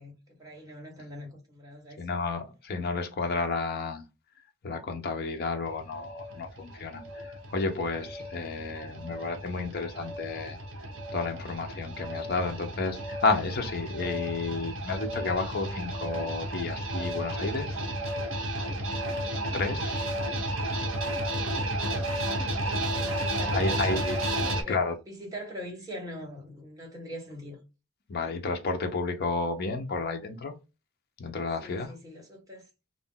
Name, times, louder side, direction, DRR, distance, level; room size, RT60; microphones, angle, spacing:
voice 1, 0.0-2.0 21.2-27.6 31.6-32.7, equal, 15° right, 1.1 m, -43 dB
voice 2, 2.0-4.0 4.6-10.6 11.1-17.9 19.5-20.1 23.5-24.2 24.7-24.9 28.1-30.6 31.2-31.9, left 3 dB, 50° left, 0.5 m, -31 dB
sound 1, 5.7-24.6, right 1 dB, 70° right, 1.0 m, -32 dB
2.5 x 2.1 x 3.6 m
head